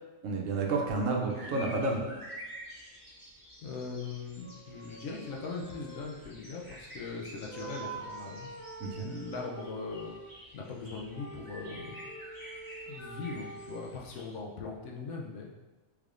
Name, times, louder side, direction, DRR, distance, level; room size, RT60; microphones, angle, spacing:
voice 1, 0.2-2.0 8.8-9.1, right 3 dB, 75° right, 0 dB, 0.9 m, -30 dB
sound 1, 0.9-1.0 4.4-7.2 7.5-10.4 11.0-14.0, right 2 dB, 15° left, 0.9 m, -46 dB
sound 2, 1.3-14.4, equal, 15° right, 1.2 m, -50 dB
voice 2, 3.6-8.5 8.9-10.1 10.5-12.0 12.9-15.5, left 4 dB, 70° left, -1 dB, 0.9 m, -40 dB
3.4 x 3.3 x 2.4 m, 1.2 s
omnidirectional pair, 1.4 m